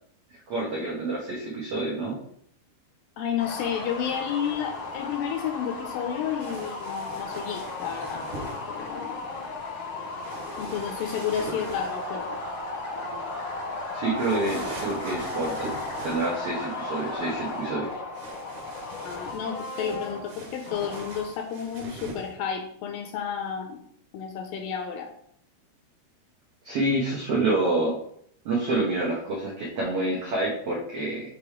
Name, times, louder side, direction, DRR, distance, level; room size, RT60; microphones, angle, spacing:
voice 1, 0.5-2.2 13.9-15.7 16.0-17.9 26.6-27.9 28.4-31.2, right 2 dB, 90° right, -3 dB, 1.3 m, -27 dB
voice 2, 3.2-8.3 8.7-9.2 10.6-12.4 19.0-23.8 24.1-25.1, left 8 dB, 80° left, 4 dB, 2.1 m, -31 dB
sound 1, 3.4-21.5, left 3 dB, 60° left, 1.4 m, -37 dB
sound 2, 6.4-8.6 10.2-12.1 14.1-16.5 18.1-22.3, right 2 dB, 60° right, 2.4 m, -42 dB
sound 3, 11.7-17.9, equal, 40° right, 1.3 m, -36 dB
6.8 x 3.3 x 4.8 m, 0.68 s
omnidirectional pair, 4.4 m